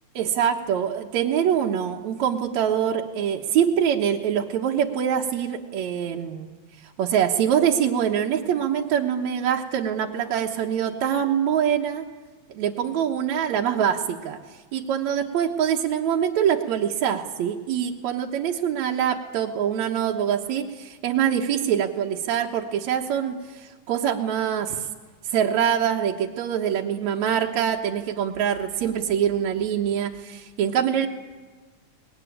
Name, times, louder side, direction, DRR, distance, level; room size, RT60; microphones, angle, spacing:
voice 1, 0.2-6.5 7.0-12.0 12.5-14.4 14.7-24.9 25.2-31.1, right 9 dB, 75° right, 0 dB, 2.4 m, -24 dB
23.5 x 19.5 x 10.0 m, 1.4 s
omnidirectional pair, 3.3 m